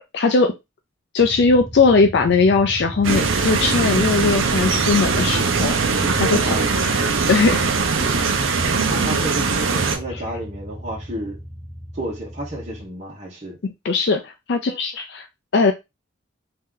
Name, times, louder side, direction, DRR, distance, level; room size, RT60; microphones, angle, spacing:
voice 1, 0.1-0.5 1.1-5.7 6.2-7.6 10.1-10.2 13.6-15.3 15.5-15.7, left 4 dB, 55° left, 0.4 m, -19 dB
sound 1, 1.2-12.9, right 1 dB, 10° left, 1.0 m, -35 dB
sound 2, 3.0-10.0, right 4 dB, 80° right, 0.7 m, -21 dB
voice 2, 6.0-6.7 8.8-11.4 11.9-13.6, right 1 dB, 35° right, 1.2 m, -31 dB
3.2 x 2.8 x 3.7 m
head